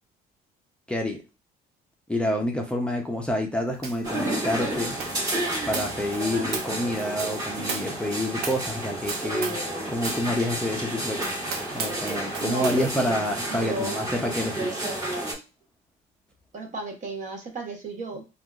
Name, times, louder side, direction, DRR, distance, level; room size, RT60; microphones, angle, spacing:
voice 1, 0.9-1.2 2.1-5.0 5.7-9.6 9.9-11.4 11.7-14.7, left 1 dB, 5° left, 1 dB, 0.5 m, -28 dB
sound 1, 3.8-4.1 4.4-9.7 10.0-10.3 10.7-10.8 11.2-12.8, right 5 dB, 75° right, 0.7 m, -36 dB
sound 2, 4.0-15.3, right 1 dB, 20° right, 1.3 m, -31 dB
voice 2, 12.4-13.2 13.5-14.1 16.5-18.2, right 2 dB, 45° right, 4 dB, 0.9 m, -34 dB
3.6 x 2.3 x 2.3 m, 0.28 s
cardioid pair, 110°, 17 cm